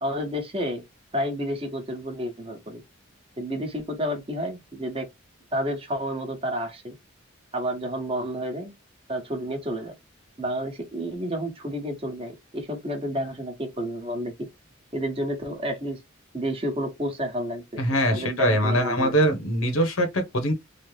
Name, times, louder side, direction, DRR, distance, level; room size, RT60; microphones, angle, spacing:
voice 1, 0.0-0.8 1.1-2.8 3.4-5.1 5.5-7.0 7.5-8.7 9.1-9.9 10.4-14.5 14.9-16.0 16.3-17.8 18.1-19.1, equal, 25° right, 0.9 m, -30 dB
voice 2, 17.8-20.5, equal, 80° left, 1.1 m, -23 dB
3.2 x 2.0 x 3.1 m
head